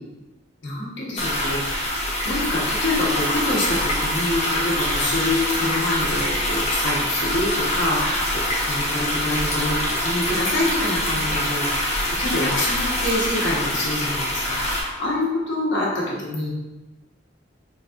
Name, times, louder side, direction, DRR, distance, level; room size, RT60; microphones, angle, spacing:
voice 1, 0.6-1.8 2.2-16.5, left 1 dB, 65° left, -6 dB, 1.3 m, -26 dB
sound 1, 1.2-14.8, left 1 dB, 35° left, 1.1 m, -24 dB
4.2 x 3.9 x 2.6 m, 1.1 s
head